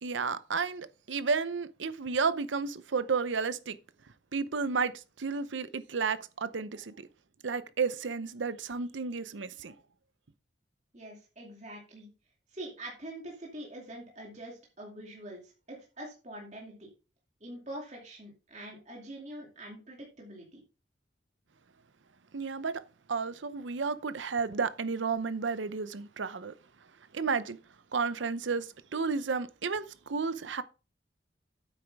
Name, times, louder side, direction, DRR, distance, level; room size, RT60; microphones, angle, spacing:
voice 1, 0.0-3.8 4.3-7.1 7.4-9.7 22.3-22.8 23.1-26.5 27.1-27.6 27.9-30.6, right 5 dB, 85° right, 0.7 m, -32 dB
voice 2, 10.9-12.1 12.5-16.9 17.4-20.6, right 1 dB, 40° right, 2.5 m, -44 dB
9.2 x 7.9 x 3.5 m
head